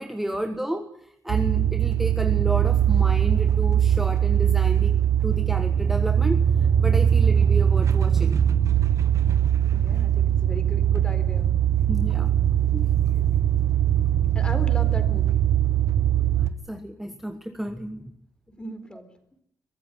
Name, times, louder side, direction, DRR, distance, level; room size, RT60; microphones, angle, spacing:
voice 1, 0.0-5.0 5.2-6.4 6.8-8.4 11.9-12.3 12.7-12.9 16.4-18.1, right 1 dB, 5° right, 7 dB, 1.4 m, -31 dB
sound 1, 1.3-16.5, right 10 dB, 60° right, 1.6 m, -21 dB
voice 2, 9.7-11.5 13.1-13.3 14.3-15.5 18.5-19.1, left 1 dB, 15° left, 9 dB, 4.2 m, -38 dB
23.0 x 14.5 x 9.9 m, 0.72 s
cardioid pair, 130°, 6 cm